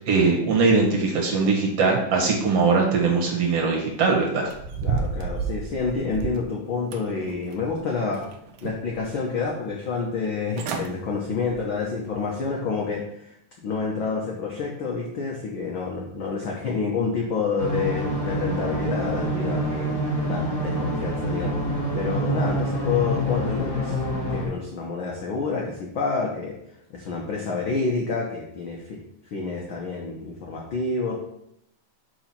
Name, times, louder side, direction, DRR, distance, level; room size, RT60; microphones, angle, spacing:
voice 1, 0.1-4.5, right 4 dB, 60° right, 0 dB, 2.1 m, -21 dB
sound 1, 4.5-6.5 6.9-7.8 8.1-9.0 9.4-9.5 10.2-10.3 10.5-10.9 11.4-11.6 12.1-12.2, right 5 dB, 75° right, 1.9 m, -31 dB
voice 2, 4.8-8.3 8.6-19.9 20.3-21.6 21.9-24.0 24.3-26.6 26.9-29.0 29.3-31.1, left 4 dB, 75° left, -1 dB, 1.1 m, -28 dB
sound 2, 17.6-24.4, equal, 10° left, 2.0 m, -26 dB
6.0 x 4.8 x 5.7 m, 0.77 s
omnidirectional pair, 3.6 m